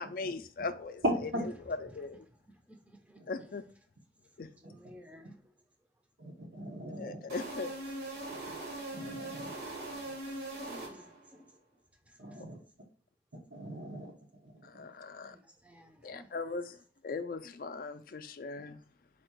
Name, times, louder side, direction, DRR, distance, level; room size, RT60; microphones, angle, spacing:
voice 1, 0.0-1.0 1.9-2.3 3.3-3.6 4.4-4.5 7.0-7.8 14.6-15.4 16.0-16.8 17.0-18.8, left 4 dB, 50° left, 0.4 m, -39 dB
voice 2, 1.0-1.4 3.2-3.3 4.6-4.7 6.2-7.2 8.9-9.5 10.0-10.2 12.2-12.6 13.5-14.9 18.6-18.7, equal, 85° right, 1.0 m, -38 dB
voice 3, 1.9-3.5 4.4-5.4 10.3-11.6 12.1-12.2 14.8-16.4, equal, 10° right, 0.5 m, -56 dB
sound 1, 7.3-11.4, right 2 dB, 70° right, 1.3 m, -41 dB
4.3 x 2.4 x 4.5 m
head